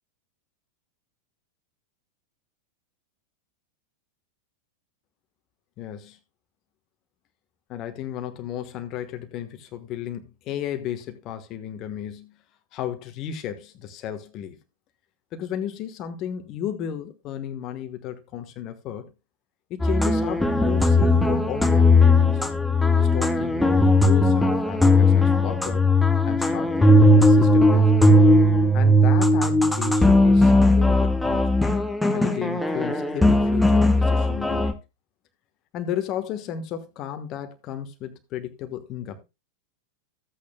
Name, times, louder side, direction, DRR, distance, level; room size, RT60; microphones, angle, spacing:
voice 1, 5.8-6.2 7.7-12.3 12.7-14.6 15.3-19.1 19.7-22.4 23.0-25.8 26.3-28.0 28.7-31.5 32.1-34.7 35.7-39.2, left 10 dB, 35° left, 1.3 m, -34 dB
sound 1, 19.8-34.7, left 1 dB, 5° left, 1.2 m, -18 dB
14.5 x 8.5 x 2.2 m
figure-of-eight pair, 90°, 0 cm